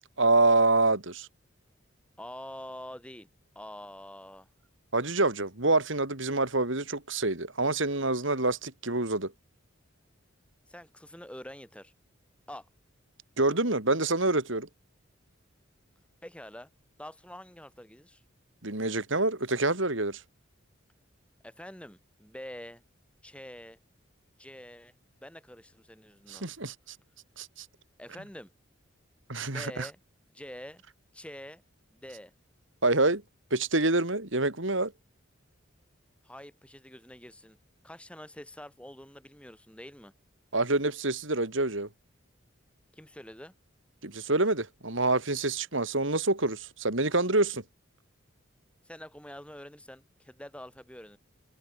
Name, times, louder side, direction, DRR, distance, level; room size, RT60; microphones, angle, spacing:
voice 1, 0.2-1.3 4.9-9.3 13.4-14.7 18.6-20.2 26.3-26.9 27.4-27.6 29.3-29.9 32.8-33.2 33.5-34.9 40.5-41.9 44.0-47.6, right 2 dB, 70° right, 3.4 m, -26 dB
voice 2, 2.2-3.3 3.5-4.5 10.7-11.9 12.5-12.7 16.2-16.7 17.0-18.2 21.4-22.8 23.2-23.8 24.4-24.9 25.2-26.4 28.0-28.5 29.5-30.0 30.3-30.8 31.1-31.6 31.9-32.3 36.2-37.6 37.8-40.1 42.9-43.5 48.8-51.2, left 1 dB, 5° left, 6.4 m, -46 dB
head